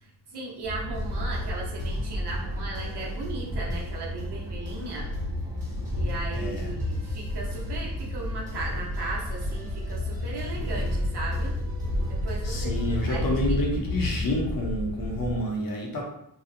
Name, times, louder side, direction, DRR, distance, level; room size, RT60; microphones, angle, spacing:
voice 1, 0.0-5.1 6.0-11.5 12.1-13.6, right 3 dB, 70° right, -2 dB, 0.7 m, -37 dB
sound 1, 0.6-15.4, left 1 dB, 40° right, 0.8 m, -31 dB
sound 2, 0.9-13.2, right 1 dB, 15° right, 1.1 m, -39 dB
voice 2, 6.3-6.7 12.4-16.0, left 1 dB, 55° left, -1 dB, 0.7 m, -29 dB
2.7 x 2.0 x 2.6 m, 0.74 s
wide cardioid pair, 120°, 42 cm